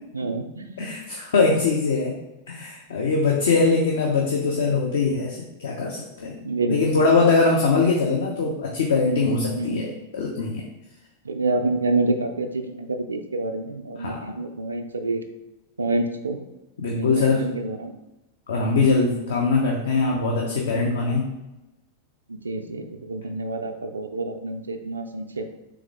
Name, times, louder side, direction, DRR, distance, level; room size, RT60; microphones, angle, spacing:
voice 1, 0.1-0.9 4.6-4.8 6.4-7.2 9.6-9.9 11.2-15.2 15.8-16.4 16.9-17.9 19.3-19.4 22.3-25.5, right 2 dB, 75° right, 6 dB, 0.3 m, -28 dB
voice 2, 0.8-2.1 2.5-6.4 6.7-9.9 10.1-10.6 14.0-14.3 16.8-17.4 18.5-21.3, left 4 dB, 60° left, -1 dB, 0.6 m, -22 dB
3.5 x 3.3 x 3.4 m, 0.97 s
figure-of-eight pair, 90°, 0 cm